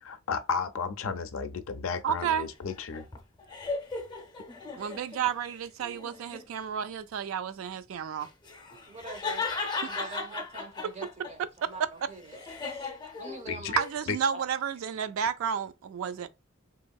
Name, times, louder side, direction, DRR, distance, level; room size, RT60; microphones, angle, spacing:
voice 1, 0.0-3.1 13.5-13.8 14.1-14.2, left 5 dB, 70° left, 0.4 m, -33 dB
voice 2, 2.0-2.5 4.7-8.3 10.0-10.2 13.8-16.3, right 8 dB, 75° right, 0.3 m, -31 dB
sound 1, 2.2-5.3 5.8-6.5 8.2-11.3 11.7-13.9, left 4 dB, 20° left, 0.5 m, -37 dB
voice 3, 8.9-9.4 9.8-12.4 13.2-13.8 14.3-14.4, right 3 dB, 35° right, 0.6 m, -44 dB
2.9 x 2.6 x 2.3 m
head